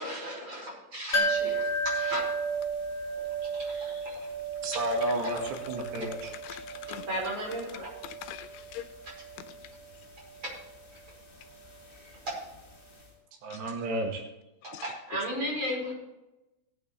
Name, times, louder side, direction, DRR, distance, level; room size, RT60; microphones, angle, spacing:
voice 1, 0.0-2.2 3.4-4.2 6.7-6.8 7.1-7.9 10.9-11.0 14.6-15.9, equal, 30° right, 6.0 m, -35 dB
sound 1, 1.1-12.7 13.0-13.1, right 2 dB, 25° left, 2.3 m, -34 dB
voice 2, 4.6-6.3 13.4-14.2, right 1 dB, 90° right, 3.9 m, -31 dB
voice 3, 5.9-7.1 8.0-8.9 14.7-14.9, left 12 dB, 85° left, 2.6 m, -42 dB
19.0 x 9.0 x 3.3 m
omnidirectional pair, 4.7 m